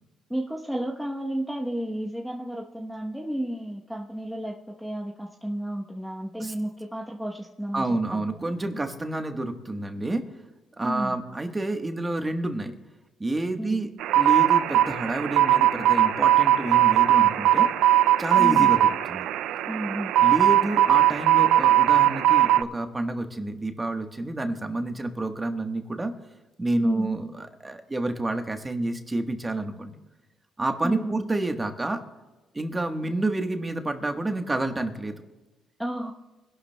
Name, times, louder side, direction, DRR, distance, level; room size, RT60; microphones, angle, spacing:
voice 1, 0.3-8.0 8.3-8.5 10.8-11.2 13.6-13.9 18.4-18.7 19.6-20.2 26.8-27.1 30.8-31.3 35.8-36.1, equal, ahead, -2 dB, 0.9 m, -32 dB
voice 2, 7.7-10.2 10.8-12.8 13.2-13.9 14.1-17.7 18.2-18.8 19.1-19.3 20.2-26.1 26.6-29.9 30.6-32.0 32.5-35.2, right 2 dB, 20° right, 6 dB, 1.2 m, -29 dB
sound 1, 14.0-22.6, right 12 dB, 85° right, 0.3 m, -20 dB
24.0 x 11.5 x 2.2 m, 1.1 s
cardioid pair, 90°, 0 cm